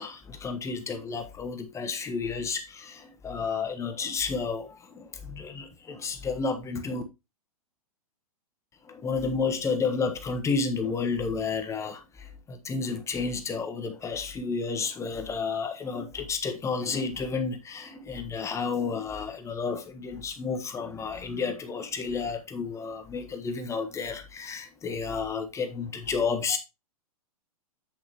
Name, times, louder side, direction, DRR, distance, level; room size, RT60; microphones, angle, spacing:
voice 1, 0.0-7.0 8.8-26.6, left 5 dB, 15° left, 1.3 m, -31 dB
8.3 x 7.0 x 2.9 m
figure-of-eight pair, 105°, 19 cm